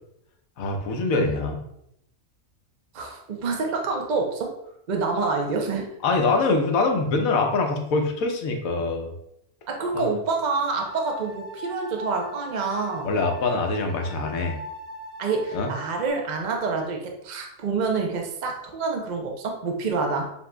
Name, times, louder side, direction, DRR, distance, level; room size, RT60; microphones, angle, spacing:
voice 1, 0.6-1.6 6.0-9.1 9.9-10.1 13.0-14.6 15.5-15.7, left 3 dB, 80° left, 3 dB, 1.1 m, -24 dB
voice 2, 2.9-4.5 4.9-5.9 6.3-6.4 7.0-7.1 9.7-13.1 15.2-20.3, right 4 dB, 50° right, 2 dB, 0.5 m, -27 dB
sound 1, 10.5-16.1, left 1 dB, 10° right, 0.8 m, -40 dB
7.0 x 2.7 x 2.2 m, 0.77 s
omnidirectional pair, 1.4 m